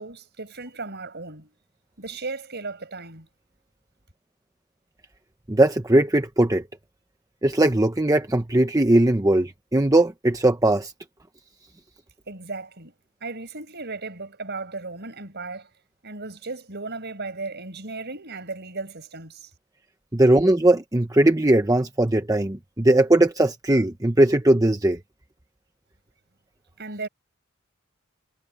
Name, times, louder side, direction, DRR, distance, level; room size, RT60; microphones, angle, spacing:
voice 1, 0.0-1.5 2.0-3.3 12.3-12.9 13.2-15.7 16.0-19.5 26.8-27.1, right 3 dB, 50° right, 6.1 m, -35 dB
voice 2, 5.5-6.6 7.4-10.9 20.1-25.0, right 1 dB, 15° right, 0.9 m, -19 dB
head